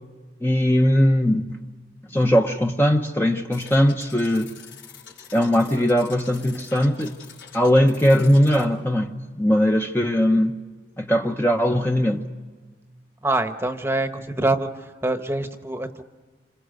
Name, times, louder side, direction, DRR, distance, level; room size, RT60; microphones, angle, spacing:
voice 1, 0.4-1.6 2.1-4.6 5.3-7.2 7.5-10.6 11.0-12.3, equal, 10° left, 0.9 m, -20 dB
sound 1, 3.5-8.6, left 7 dB, 85° left, 4.8 m, -45 dB
voice 2, 13.2-14.7 15.0-16.0, right 2 dB, 15° right, 1.1 m, -24 dB
27.5 x 27.0 x 6.6 m
head